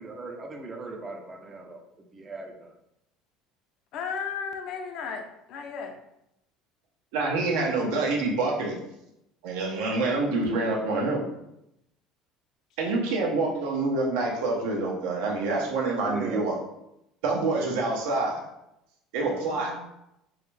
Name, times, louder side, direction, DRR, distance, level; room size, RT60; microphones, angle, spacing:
voice 1, 0.0-2.7 16.1-16.5, right 2 dB, 20° right, 2 dB, 0.5 m, -39 dB
voice 2, 3.9-5.9 19.2-19.9, left 6 dB, 50° left, 4 dB, 0.6 m, -35 dB
voice 3, 7.1-8.8 9.4-11.2 12.8-16.6 17.2-18.4 19.1-19.7, right 3 dB, 80° right, -1 dB, 1.1 m, -26 dB
3.8 x 3.5 x 3.3 m, 0.83 s
cardioid pair, 160°, 0 cm